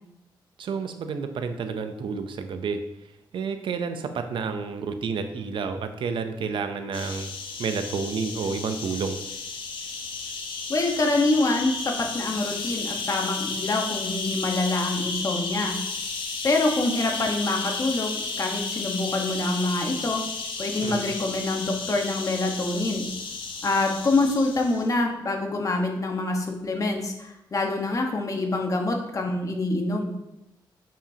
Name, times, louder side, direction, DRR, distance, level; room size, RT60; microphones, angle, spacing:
voice 1, 0.6-2.8 3.3-7.3 7.6-9.2 20.8-21.1, right 5 dB, 75° right, 8 dB, 0.6 m, -30 dB
sound 1, 6.9-24.9, left 4 dB, 75° left, 1.0 m, -33 dB
voice 2, 10.7-15.8 16.4-20.2 20.6-23.1 23.6-30.1, left 2 dB, 40° left, 2 dB, 1.3 m, -26 dB
7.0 x 5.6 x 2.8 m, 0.87 s
cardioid pair, 85°, 9 cm